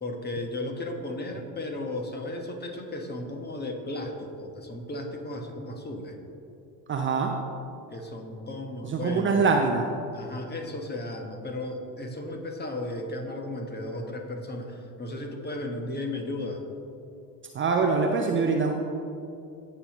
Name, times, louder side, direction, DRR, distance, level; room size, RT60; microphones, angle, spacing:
voice 1, 0.0-6.2 7.9-9.4 10.1-16.6, left 1 dB, 20° left, 3 dB, 1.4 m, -35 dB
voice 2, 6.9-7.3 8.8-9.9 17.5-18.7, right 4 dB, 25° right, 2 dB, 0.7 m, -24 dB
17.0 x 5.7 x 3.0 m, 2.7 s
hypercardioid pair, 75°, 49 cm